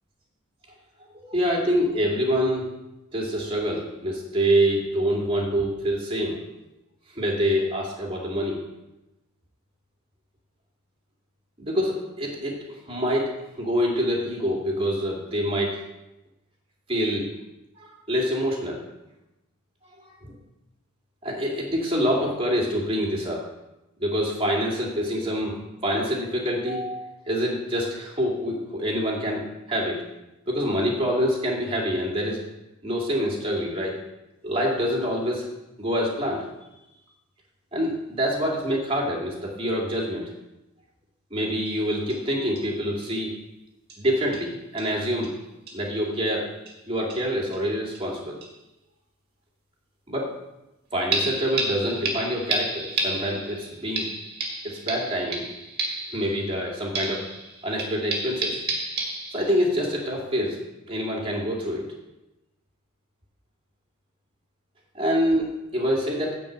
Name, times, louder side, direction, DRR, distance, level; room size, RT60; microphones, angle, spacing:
voice 1, 1.1-2.7 3.1-6.4 7.1-8.6 11.6-15.8 16.9-17.3 17.7-18.8 20.0-20.4 21.2-23.4 24.0-30.0 30.5-32.4 32.8-34.0 34.4-35.5 35.8-36.4 37.7-40.3 41.3-43.3 44.0-45.3 45.7-46.5 46.9-48.4 50.1-50.3 50.9-54.1 54.6-55.5 56.1-57.2 57.6-58.6 59.3-60.6 60.9-61.8 64.9-66.4, equal, 25° right, -2 dB, 2.6 m, -26 dB
sound 1, 41.7-41.8 42.1-42.2 42.6-42.7 43.0-43.1 43.9-44.0 44.3-44.5 44.8-44.9 45.2-45.3 45.7-45.8 46.7-46.8 47.1-47.6 47.9-48.0 48.4-48.5 51.1-56.7 56.9-59.7 60.2-60.3, right 2 dB, 50° right, 2.0 m, -31 dB
10.0 x 4.6 x 8.0 m, 0.95 s
head